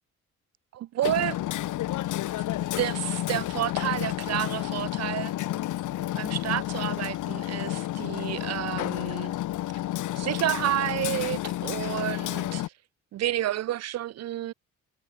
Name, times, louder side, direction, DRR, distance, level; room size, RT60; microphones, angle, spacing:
voice 1, 0.7-1.4 2.8-5.3 6.1-9.3 10.2-12.6 13.1-14.5, right 13 dB, 60° right, 0.5 m, -30 dB
Hammer, 1.0-12.7, left 14 dB, 80° left, 1.0 m, -30 dB
cardioid pair, 120°, 30 cm